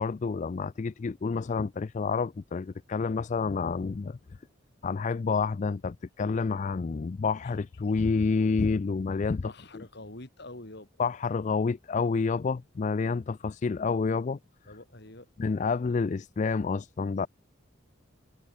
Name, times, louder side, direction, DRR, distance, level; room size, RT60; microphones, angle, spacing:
voice 1, 0.0-4.2 4.8-9.4 11.0-14.4 15.4-17.3, left 4 dB, 40° left, 0.4 m, -29 dB
voice 2, 9.4-10.9 14.7-15.3, left 2 dB, 60° left, 3.4 m, -45 dB
head